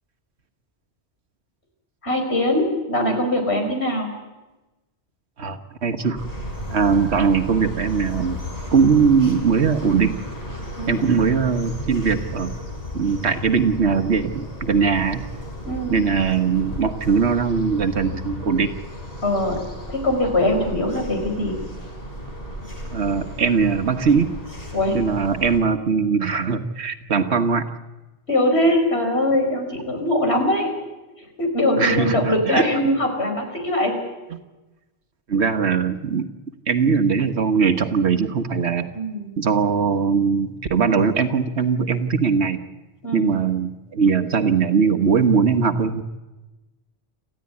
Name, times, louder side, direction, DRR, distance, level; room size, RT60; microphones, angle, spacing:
voice 1, 2.0-4.1 10.8-11.1 15.6-16.0 19.2-19.6 19.8-21.5 24.7-25.0 27.1-27.3 28.3-30.7 31.2-33.9 38.9-39.3 43.0-43.3, left 1 dB, 75° left, 4 dB, 5.6 m, -22 dB
voice 2, 5.4-6.2 6.7-8.4 8.7-10.1 10.9-12.5 12.9-15.2 15.9-18.7 22.9-24.4 24.9-27.6 31.8-32.7 35.3-36.3 36.7-38.9 39.4-42.6 43.1-46.0, right 5 dB, 80° right, 7 dB, 1.6 m, -20 dB
sound 1, 6.2-25.6, equal, 35° left, 4.3 m, -34 dB
27.5 x 15.0 x 9.8 m, 1.1 s
omnidirectional pair, 1.1 m